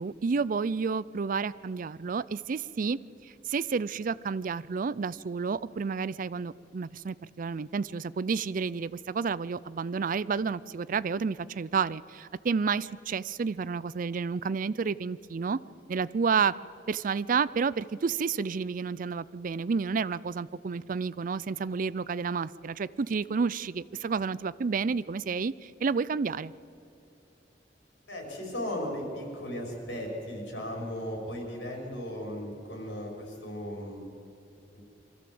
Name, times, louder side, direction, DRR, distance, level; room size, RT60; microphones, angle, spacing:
voice 1, 0.0-15.6 15.9-16.5 16.9-26.5, right 5 dB, 50° right, 18 dB, 0.4 m, -30 dB
voice 2, 28.1-34.1 34.7-34.8, equal, 85° left, 0 dB, 5.4 m, -36 dB
24.0 x 14.0 x 7.7 m, 2.7 s
head